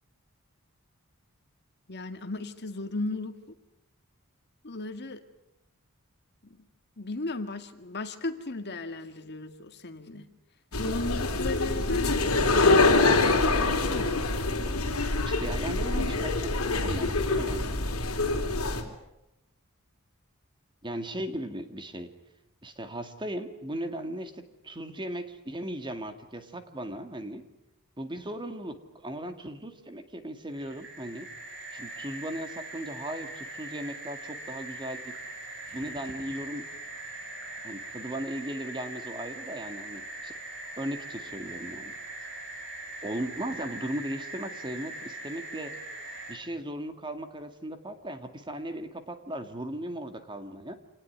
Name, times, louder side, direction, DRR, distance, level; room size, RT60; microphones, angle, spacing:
voice 1, 1.9-3.6 4.6-5.2 6.4-6.7 7.0-10.3 10.8-14.3, left 2 dB, 50° left, 8 dB, 2.0 m, -36 dB
sound 1, 10.7-18.8, left 3 dB, 70° left, 3.7 m, -25 dB
voice 2, 15.2-16.5 16.8-17.8 20.8-22.1 22.6-27.4 28.0-31.3 31.7-35.1 35.7-36.7 37.6-40.3 40.8-41.9 43.0-45.7 46.3-50.8, right 1 dB, 20° right, 8 dB, 2.2 m, -37 dB
sound 2, 30.5-46.4, right 2 dB, 55° right, 5.9 m, -41 dB
26.5 x 19.5 x 9.5 m, 0.90 s
head